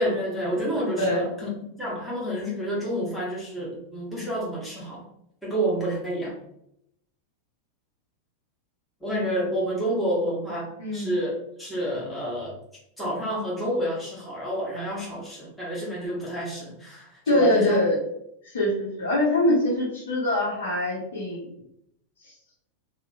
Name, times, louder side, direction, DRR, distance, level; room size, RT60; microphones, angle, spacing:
voice 1, 0.0-5.0 5.4-6.4 9.0-11.3 11.6-12.6 13.0-17.8, equal, 5° left, -6 dB, 1.1 m, -29 dB
voice 2, 17.3-17.9 18.4-21.5, left 1 dB, 65° left, -4 dB, 0.8 m, -23 dB
2.7 x 2.1 x 2.5 m, 0.76 s
figure-of-eight pair, 90°, 0 cm